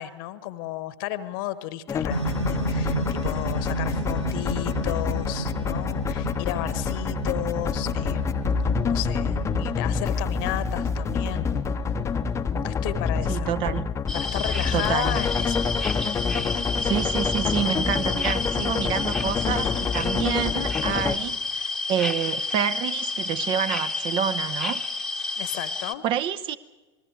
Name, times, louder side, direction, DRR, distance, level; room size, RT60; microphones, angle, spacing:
voice 1, 0.0-11.6 12.5-13.6 14.1-15.7 25.4-26.0, left 14 dB, 50° left, 1.3 m, -33 dB
sound 1, 1.9-21.2, left 5 dB, 20° left, 0.9 m, -27 dB
sound 2, 2.1-13.5, right 3 dB, 90° right, 1.6 m, -33 dB
voice 2, 13.3-13.9 14.7-15.2 16.8-24.8 26.0-26.6, right 10 dB, 35° right, 0.9 m, -28 dB
sound 3, 14.1-25.9, left 3 dB, ahead, 1.2 m, -30 dB
28.0 x 20.0 x 4.8 m
figure-of-eight pair, 90°, 15 cm